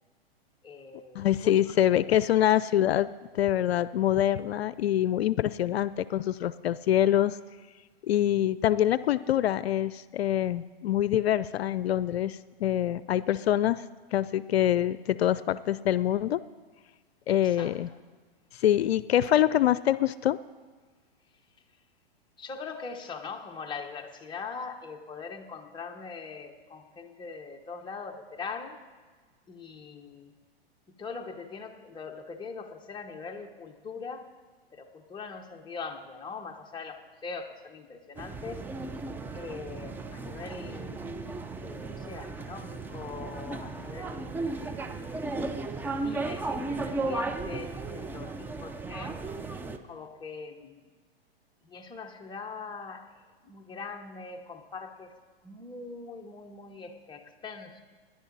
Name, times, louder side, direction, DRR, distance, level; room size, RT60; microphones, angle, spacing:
voice 1, 0.6-1.5 17.6-17.7 22.4-28.8 29.5-30.3 31.0-34.3 34.7-38.6 39.3-41.0 41.6-44.8 45.4-49.2 49.9-50.8 51.7-53.1 53.4-55.1 55.4-57.8, left 5 dB, 15° left, 3 dB, 1.0 m, -42 dB
voice 2, 1.1-3.1 3.3-7.4 8.1-13.8 14.1-16.4 17.3-17.9 18.5-20.4, left 11 dB, 80° left, 17 dB, 0.5 m, -25 dB
sound 1, 38.2-49.8, right 3 dB, 5° right, 0.4 m, -35 dB
18.5 x 10.5 x 4.0 m, 1.4 s
hypercardioid pair, 120°, 31 cm